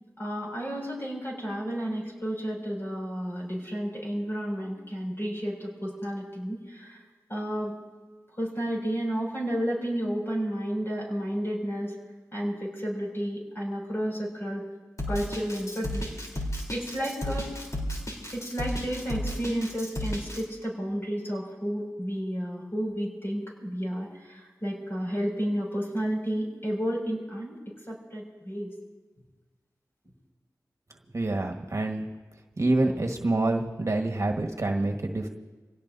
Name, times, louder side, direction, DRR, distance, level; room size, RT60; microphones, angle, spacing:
voice 1, 0.2-7.0 7.3-7.7 8.4-11.9 12.3-14.6 15.1-16.4 16.7-17.5 18.3-27.6 27.9-28.7, equal, 35° left, -2 dB, 6.1 m, -32 dB
Drum kit, 15.0-20.4, equal, 50° left, 3.6 m, -33 dB
voice 2, 31.1-32.1 32.6-35.3, right 2 dB, 50° right, 3 dB, 1.5 m, -27 dB
27.0 x 17.5 x 2.7 m, 1.3 s
cardioid pair, 45°, 7 cm